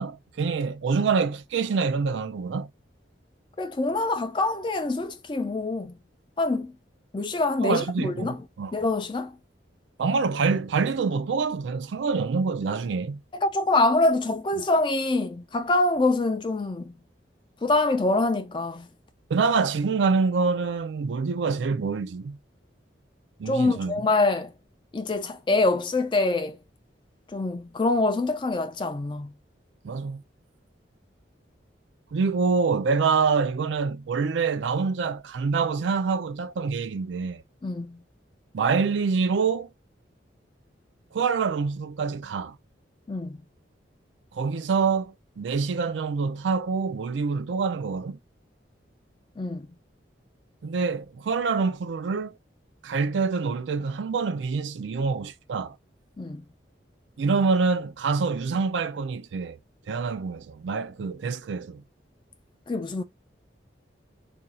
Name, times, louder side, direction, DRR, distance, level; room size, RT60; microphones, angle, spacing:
voice 1, 0.0-2.7 7.6-8.7 10.0-13.2 19.3-22.4 23.4-23.9 29.8-30.2 32.1-37.4 38.5-39.7 41.1-42.6 44.3-48.2 50.6-52.3 52.8-55.8 57.2-59.6 59.9-61.8, right 5 dB, 75° right, 0.4 m, -26 dB
voice 2, 3.6-6.0 6.4-6.7 7.1-8.4 8.7-9.4 13.3-17.0 17.6-18.9 23.5-24.5 24.9-26.6 27.3-29.3 37.6-38.0 43.1-43.4 49.4-49.7 56.2-56.4 62.7-63.0, left 2 dB, 25° left, 0.3 m, -25 dB
2.6 x 2.3 x 4.0 m
head